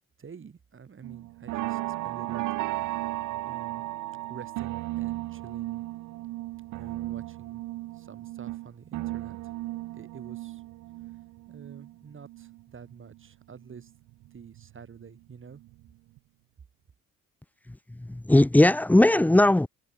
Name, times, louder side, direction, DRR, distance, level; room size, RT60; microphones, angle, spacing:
voice 1, 0.2-3.1 3.4-3.8 4.3-5.8 6.7-7.6 7.9-9.4 9.9-10.6 11.5-13.9 14.3-15.6, right 6 dB, 40° right, 5.8 m, -48 dB
sound 1, 1.0-13.2 13.5-15.1 15.5-15.9 16.2-16.3, right 18 dB, 85° right, 0.8 m, -35 dB
voice 2, 17.7-19.7, left 1 dB, 5° left, 0.6 m, -19 dB
cardioid pair, 90°, 30 cm